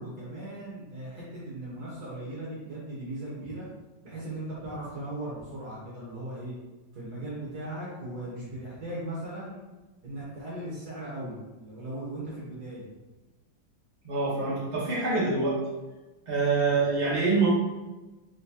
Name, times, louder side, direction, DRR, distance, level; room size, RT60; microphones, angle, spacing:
voice 1, 0.0-3.6 4.0-6.5 6.9-9.6 10.0-12.9 16.5-16.7, right 1 dB, 60° right, -7 dB, 1.7 m, -38 dB
voice 2, 14.0-15.6 16.3-17.5, right 3 dB, 25° right, -9 dB, 1.4 m, -25 dB
4.2 x 3.8 x 2.8 m, 1.1 s
omnidirectional pair, 2.0 m